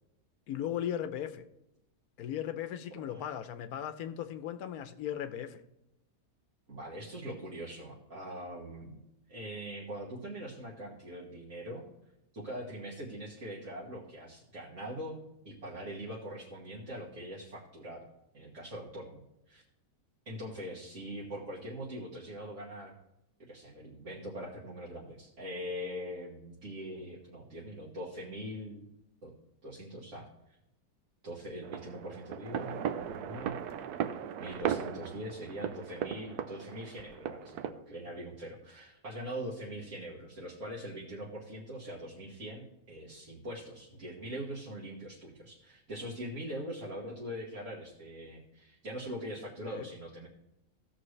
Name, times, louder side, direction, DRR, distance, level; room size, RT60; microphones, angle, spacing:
voice 1, 0.5-1.5 2.2-5.6 34.7-34.8 49.6-49.9, left 10 dB, 80° left, 11 dB, 1.1 m, -37 dB
voice 2, 6.7-9.0 9.3-11.8 12.3-15.2 15.5-18.1 18.3-19.6 20.3-22.9 23.4-28.8 29.2-29.3 29.6-30.6 31.2-33.6 34.4-50.3, equal, 55° right, -5 dB, 1.7 m, -42 dB
sound 1, 31.6-37.7, right 9 dB, 85° right, 1.1 m, -37 dB
15.5 x 6.4 x 3.2 m, 0.89 s
omnidirectional pair, 1.6 m